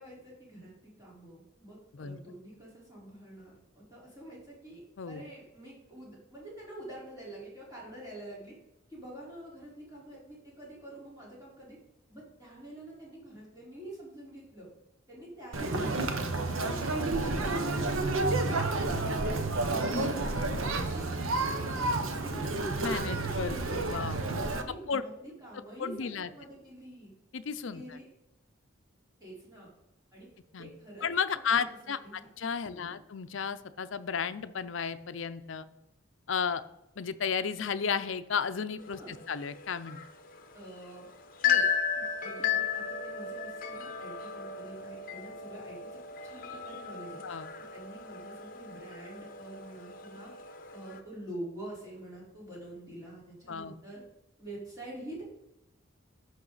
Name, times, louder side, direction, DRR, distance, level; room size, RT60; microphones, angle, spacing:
voice 1, 0.0-4.8 5.1-8.6 8.9-11.8 12.1-14.7 15.1-19.3 19.6-22.8 23.5-27.1 27.7-28.1 29.2-29.7 30.1-30.3 30.6-31.1 31.5-31.8 32.0-32.3 32.6-33.0 38.9-39.2 40.5-41.1 41.4-41.6 42.0-45.8 46.2-47.2 47.7-50.3 50.7-54.0 54.4-55.2, right 1 dB, 15° right, -6 dB, 4.0 m, -47 dB
Conversation, 15.5-24.6, right 2 dB, 85° right, 0.9 m, -30 dB
voice 2, 22.8-24.2 24.9-25.0 25.8-26.3 27.3-27.8 30.5-30.7 31.0-35.7 36.3-36.6 37.0-40.0 47.2-47.5 53.5-53.7, left 6 dB, 70° left, 11 dB, 0.5 m, -33 dB
sound 1, 38.8-51.0, left 7 dB, 45° left, 0.9 m, -34 dB
11.0 x 6.4 x 4.0 m, 0.87 s
head